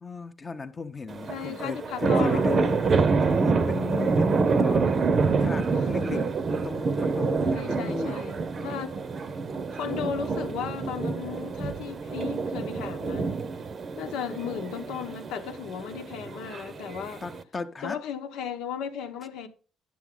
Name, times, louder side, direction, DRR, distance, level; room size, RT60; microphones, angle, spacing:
voice 1, 0.0-4.9 5.2-6.2 6.6-8.3 14.3-14.5 17.2-18.0, left 4 dB, 25° left, 0.8 m, -35 dB
sound 1, 1.1-17.4, right 4 dB, 35° right, 0.7 m, -27 dB
voice 2, 1.3-2.5 5.7-6.4 7.5-8.9 9.7-13.3 14.0-17.2 17.8-19.5, left 8 dB, 80° left, 1.1 m, -35 dB
10.5 x 7.1 x 3.8 m
cardioid pair, 125°, 0 cm